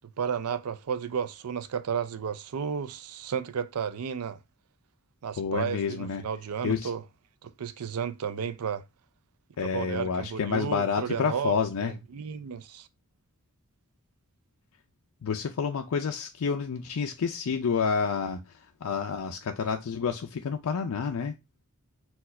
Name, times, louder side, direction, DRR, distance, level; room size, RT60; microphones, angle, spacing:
voice 1, 0.2-4.4 5.2-7.0 7.4-8.8 9.6-11.5 11.8-12.9, right 7 dB, 85° right, 0.5 m, -33 dB
voice 2, 5.4-6.2 6.6-6.9 9.6-11.9 15.2-21.3, left 6 dB, 75° left, 0.4 m, -29 dB
4.4 x 2.4 x 4.2 m
head